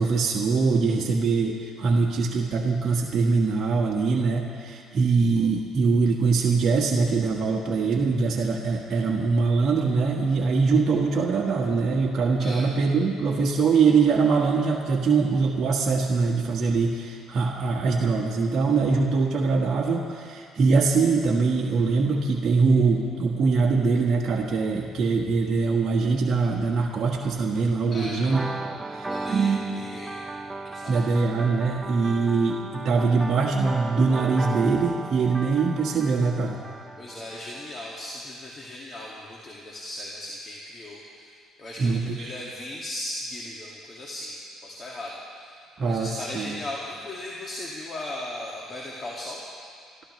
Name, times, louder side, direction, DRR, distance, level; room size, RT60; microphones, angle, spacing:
voice 1, 0.0-28.4 28.9-29.6 30.9-36.6 41.8-42.3 45.8-46.6, right 4 dB, 45° right, -2 dB, 1.6 m, -23 dB
sound 1, 28.3-37.9, right 2 dB, 15° right, 0.7 m, -36 dB
voice 2, 29.1-30.2 30.6-31.0 37.0-49.4, left 1 dB, 35° left, -4 dB, 2.1 m, -37 dB
30.0 x 13.5 x 3.2 m, 2.3 s
cardioid pair, 90°, 0 cm